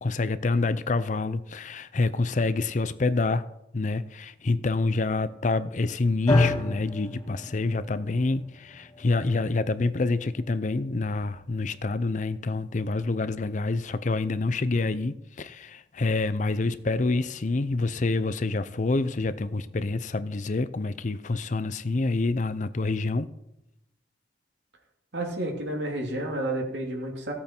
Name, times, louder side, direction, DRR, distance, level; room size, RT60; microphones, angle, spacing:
voice 1, 0.0-3.5 3.7-23.3, left 3 dB, 45° left, 0.5 m, -27 dB
sound 1, 6.3-14.5, left 2 dB, 25° left, 1.2 m, -32 dB
voice 2, 25.1-27.3, right 1 dB, 80° right, 2.6 m, -30 dB
16.0 x 8.5 x 4.5 m
head